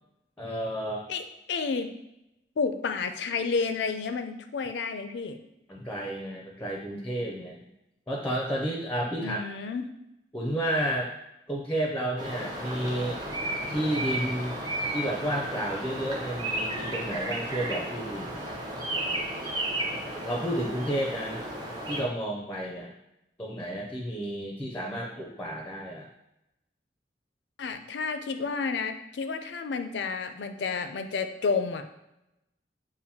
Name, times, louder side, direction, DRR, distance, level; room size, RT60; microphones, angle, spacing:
voice 1, 0.4-1.1 5.7-7.6 8.1-9.4 10.3-11.1 11.5-13.2 13.7-14.5 14.9-18.3 20.2-21.4 21.9-22.9 23.4-26.1, right 1 dB, 10° left, 0 dB, 0.4 m, -31 dB
voice 2, 1.1-1.9 2.6-5.4 9.2-9.9 27.6-31.8, left 5 dB, 75° left, 8 dB, 0.4 m, -30 dB
sound 1, 12.2-22.0, right 1 dB, 25° right, 0.7 m, -33 dB
6.7 x 2.5 x 2.8 m, 0.88 s
head